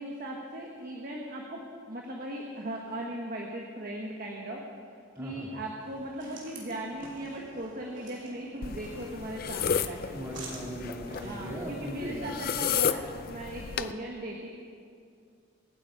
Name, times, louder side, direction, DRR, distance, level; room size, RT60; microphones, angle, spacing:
voice 1, 0.0-4.9 5.2-10.4 11.2-14.5, right 1 dB, 45° right, -1 dB, 1.4 m, -38 dB
voice 2, 5.2-5.6 10.1-12.3, equal, 15° right, -3 dB, 2.7 m, -38 dB
sound 1, 5.8-11.5, right 2 dB, 65° right, 3.2 m, -49 dB
sound 2, 8.6-13.9, left 7 dB, 45° left, 0.4 m, -33 dB
26.0 x 9.0 x 4.8 m, 2.3 s
head